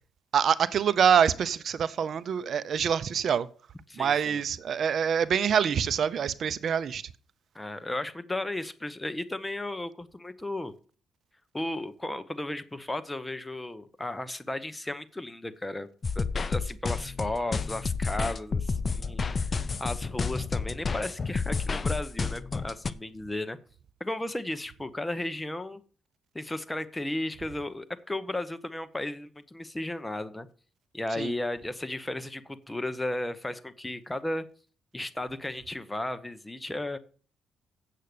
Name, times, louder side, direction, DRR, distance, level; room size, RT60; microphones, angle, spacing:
voice 1, 0.3-3.5 4.0-7.0 31.2-31.3, right 7 dB, 60° right, 0.5 m, -25 dB
voice 2, 3.9-4.4 7.5-10.7 11.5-15.9 16.1-23.6 24.0-25.8 26.3-30.5 30.9-34.5 34.9-37.0, left 1 dB, 10° left, 0.9 m, -34 dB
sound 1, 16.0-22.9, left 4 dB, 35° left, 0.6 m, -30 dB
8.2 x 7.6 x 6.7 m
cardioid pair, 90°, 0 cm